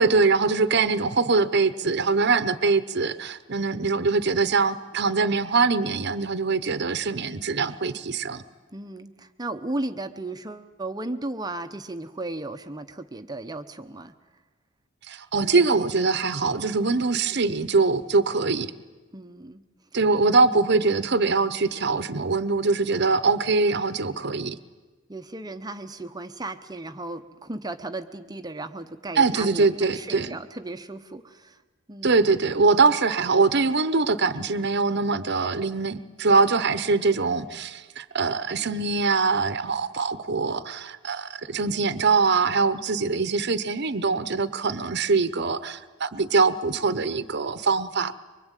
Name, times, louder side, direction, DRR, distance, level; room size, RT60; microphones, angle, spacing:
voice 1, 0.0-8.4 15.1-18.7 19.9-24.6 29.2-30.4 32.0-48.2, right 4 dB, 60° right, 12 dB, 0.9 m, -23 dB
voice 2, 8.7-14.1 19.1-19.6 25.1-31.6 31.9-32.2, right 2 dB, 20° right, 8 dB, 0.8 m, -35 dB
24.5 x 23.5 x 9.0 m, 1.2 s
head